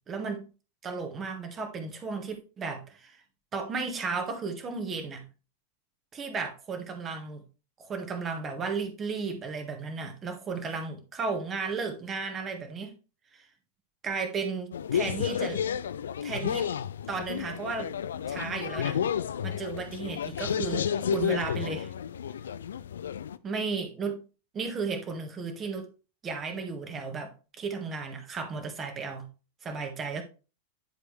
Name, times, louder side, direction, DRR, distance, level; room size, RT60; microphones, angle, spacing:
voice 1, 0.1-0.5 0.8-3.2 3.5-5.2 6.1-7.4 7.8-12.9 13.3-13.4 14.0-15.6 16.2-16.7 17.1-17.9 18.3-19.0 19.4-21.9 23.4-24.2 24.5-25.9 26.2-29.3 29.6-30.2, right 4 dB, 25° right, 1.6 m, -34 dB
sound 1, 14.7-23.4, left 8 dB, 65° left, 0.4 m, -31 dB
10.0 x 4.8 x 3.3 m
figure-of-eight pair, 90°, 0 cm